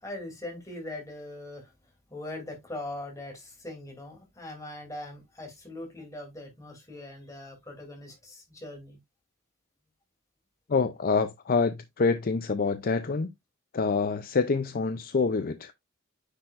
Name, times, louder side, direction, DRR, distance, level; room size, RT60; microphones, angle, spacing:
voice 1, 0.0-1.7 2.1-9.0, left 1 dB, 15° left, 2.8 m, -41 dB
voice 2, 10.7-13.3 13.7-15.7, left 4 dB, 45° left, 0.5 m, -26 dB
9.7 x 4.3 x 2.5 m
head